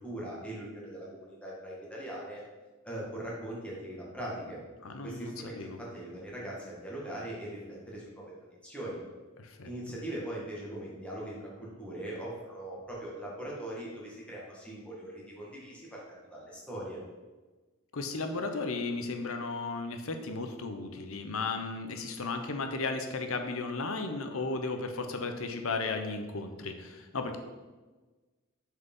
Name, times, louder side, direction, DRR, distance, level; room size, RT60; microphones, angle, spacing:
voice 1, 0.0-2.4 2.8-4.6 5.0-8.3 8.6-9.0 9.6-17.0, right 1 dB, 5° left, -5 dB, 1.8 m, -40 dB
voice 2, 4.8-5.8 9.4-9.7 17.9-27.4, left 3 dB, 70° left, 6 dB, 0.8 m, -35 dB
6.6 x 4.8 x 5.4 m, 1.3 s
head